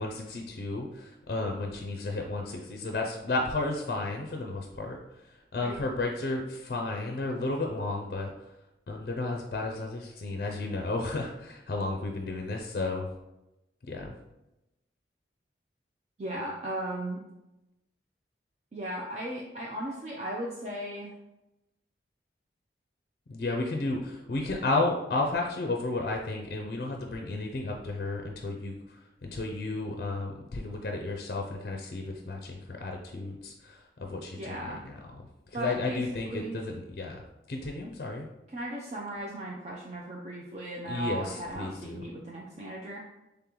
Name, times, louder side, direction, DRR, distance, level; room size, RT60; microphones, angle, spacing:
voice 1, 0.0-5.0 5.3-8.3 8.9-13.1 13.9-14.1 23.3-29.0 29.3-35.2 35.5-37.2 37.5-38.3 40.9-42.0, left 2 dB, 55° left, 1 dB, 0.4 m, -33 dB
voice 2, 16.2-17.2 18.7-21.1 34.4-34.8 35.5-36.0 36.3-36.6 38.5-43.0, right 1 dB, 40° right, -3 dB, 0.4 m, -36 dB
3.7 x 3.4 x 2.9 m, 0.94 s
head